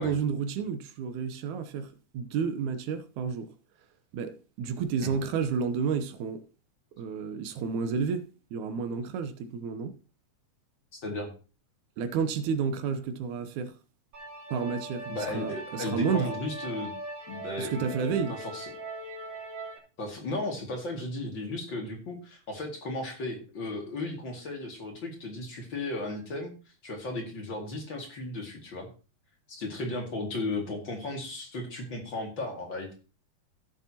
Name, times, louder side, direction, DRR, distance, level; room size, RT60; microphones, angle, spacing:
voice 1, 0.0-3.5 4.1-6.4 7.0-10.0 12.0-13.7 14.5-16.3 17.6-18.3, right 6 dB, 75° right, 2.2 m, -31 dB
sound 1, 14.1-19.8, right 2 dB, 50° right, 4.0 m, -40 dB
voice 2, 15.1-16.9 17.3-17.9 18.3-18.6 20.0-26.5 26.8-28.9 29.5-32.9, left 2 dB, 40° left, 2.6 m, -35 dB
16.0 x 7.3 x 2.9 m
omnidirectional pair, 3.6 m